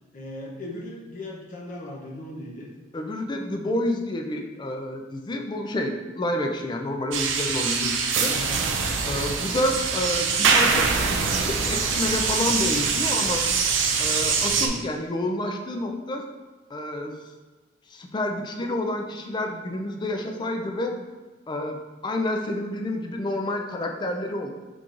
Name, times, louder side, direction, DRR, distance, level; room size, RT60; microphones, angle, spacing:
voice 1, 0.1-2.7 8.2-8.7 14.5-14.9, left 1 dB, 45° left, -2 dB, 0.7 m, -38 dB
voice 2, 2.9-8.3 9.0-13.4 14.0-16.3 16.7-17.1 17.9-21.0 21.5-24.5, left 1 dB, 25° left, 3 dB, 0.4 m, -29 dB
sound 1, 7.1-14.7, right 5 dB, 75° right, 0.4 m, -23 dB
4.4 x 3.7 x 2.5 m, 1.2 s
head